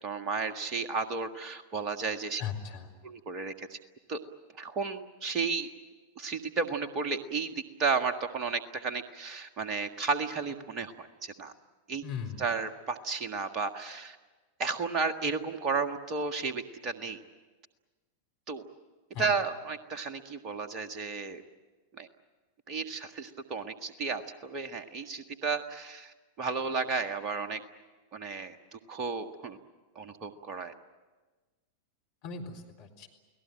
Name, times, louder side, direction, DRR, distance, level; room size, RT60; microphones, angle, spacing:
voice 1, 0.0-2.4 3.0-3.8 4.1-4.2 4.6-5.7 6.2-7.5 7.8-11.5 11.9-12.0 12.4-14.2 14.6-17.2 18.5-18.6 19.2-21.4 21.9-22.1 22.7-27.6 28.1-29.6 29.9-30.7, right 4 dB, 35° right, 9 dB, 1.8 m, -33 dB
voice 2, 2.4-2.9 12.0-12.5 19.1-19.3 32.2-33.1, left 7 dB, 50° left, 2 dB, 4.2 m, -38 dB
29.5 x 18.5 x 8.9 m, 1.3 s
figure-of-eight pair, 90°, 0 cm